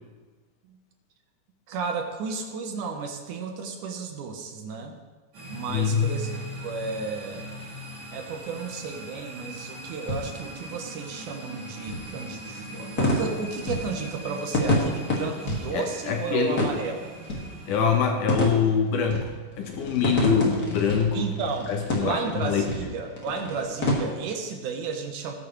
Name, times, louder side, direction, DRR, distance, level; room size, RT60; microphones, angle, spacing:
voice 1, 1.7-5.0 5.4-7.4 8.1-17.1 21.1-21.7 22.0-25.3, right 5 dB, 75° right, 4 dB, 2.5 m, -33 dB
sound 1, 5.3-18.0, right 1 dB, 55° right, 4.9 m, -40 dB
voice 2, 5.7-6.1 15.7-16.7 17.7-19.3 19.6-21.3 21.7-22.6, left 6 dB, 75° left, 3 dB, 2.4 m, -24 dB
sound 2, 6.9-23.9, left 1 dB, 30° left, 2.3 m, -30 dB
19.0 x 9.4 x 3.2 m, 1.4 s
omnidirectional pair, 3.7 m